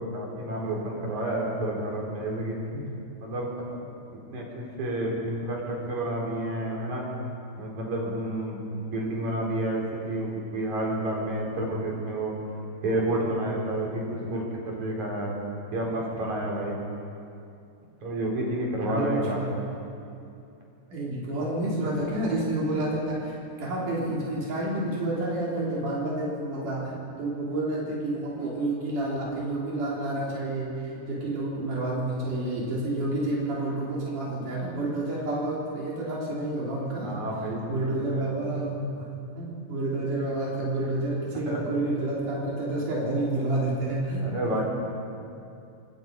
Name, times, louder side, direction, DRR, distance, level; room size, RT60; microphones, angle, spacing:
voice 1, 0.1-2.5 3.2-3.5 4.3-7.0 7.6-12.3 12.8-15.4 15.7-16.8 18.0-19.4 37.0-38.3 41.5-41.6 44.2-44.6, right 1 dB, 70° right, -2 dB, 5.5 m, -30 dB
voice 2, 18.9-19.5 20.9-37.2 37.7-39.1 39.4-44.6, right 2 dB, 90° right, -5 dB, 5.3 m, -29 dB
26.5 x 22.5 x 5.4 m, 2.6 s
omnidirectional pair, 3.5 m